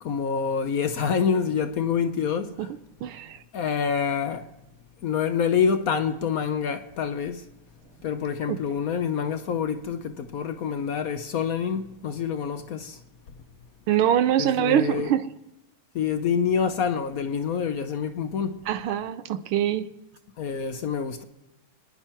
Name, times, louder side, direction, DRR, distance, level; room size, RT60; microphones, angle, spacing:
voice 1, 0.0-2.7 3.5-4.5 5.0-7.4 8.0-13.0 14.4-15.1 15.9-18.6 20.4-21.2, left 7 dB, 65° left, 0.9 m, -27 dB
voice 2, 3.0-3.4 8.5-8.6 13.9-15.3 18.7-19.9, right 11 dB, 80° right, 1.6 m, -24 dB
30.0 x 10.5 x 4.4 m
omnidirectional pair, 2.4 m